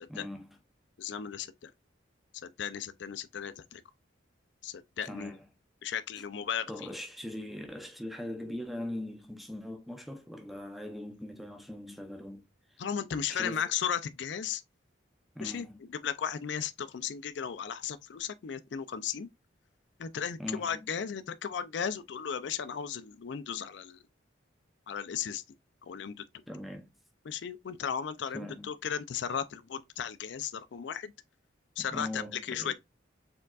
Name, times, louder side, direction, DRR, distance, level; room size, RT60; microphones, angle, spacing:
voice 1, 0.1-0.6 5.0-5.4 6.7-12.5 13.3-13.6 15.3-15.8 20.4-20.9 26.5-26.9 28.3-28.7 31.8-32.7, left 1 dB, ahead, 0.6 m, -41 dB
voice 2, 1.0-1.7 2.4-3.8 4.6-5.3 5.8-6.9 12.8-14.6 15.4-15.7 15.9-19.3 20.0-24.0 24.9-25.4 25.8-26.2 27.3-31.1 31.8-32.7, left 7 dB, 70° left, 0.4 m, -35 dB
4.5 x 3.7 x 2.3 m
head